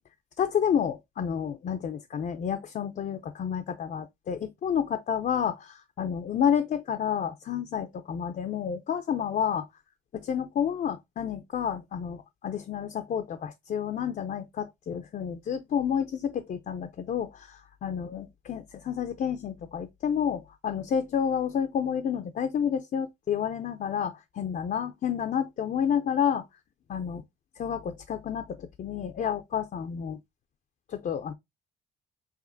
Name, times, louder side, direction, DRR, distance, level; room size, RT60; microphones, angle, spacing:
voice 1, 0.4-9.7 10.1-26.5 26.9-27.2 27.6-30.2 30.9-31.3, left 8 dB, 45° left, 0.5 m, -30 dB
4.9 x 2.6 x 2.6 m
cardioid pair, 90°, 20 cm